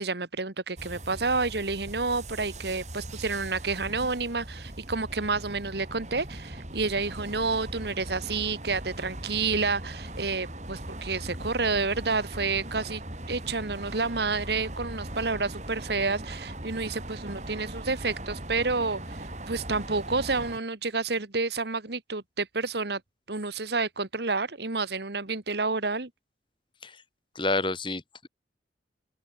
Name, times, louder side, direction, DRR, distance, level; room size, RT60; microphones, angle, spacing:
voice 1, 0.0-13.0 13.3-19.2 19.5-23.0 23.3-26.1, right 3 dB, 65° right, 1.7 m, -29 dB
sound 1, 0.8-20.6, right 1 dB, 40° right, 5.2 m, -39 dB
voice 2, 27.3-28.3, left 2 dB, 25° left, 3.3 m, -29 dB
open air
head